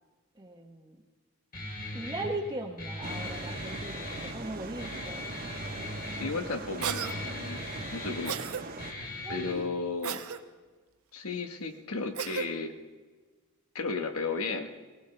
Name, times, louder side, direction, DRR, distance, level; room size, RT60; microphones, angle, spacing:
voice 1, 0.4-1.0 1.9-5.3 9.0-9.7, right 1 dB, 20° right, -3 dB, 0.9 m, -39 dB
Guitar, 1.5-9.5, left 1 dB, 40° left, 2.8 m, -39 dB
sound 1, 3.0-8.9, right 3 dB, 40° right, 1.1 m, -41 dB
voice 2, 6.1-7.6 7.9-8.4 9.3-10.2 11.1-12.7 13.7-14.7, left 4 dB, 85° left, 7 dB, 1.2 m, -34 dB
Cough, 6.8-7.1 8.3-8.6 10.0-10.4 12.2-12.5, right 8 dB, 85° right, 0.7 m, -33 dB
18.5 x 18.0 x 3.3 m, 1.3 s
head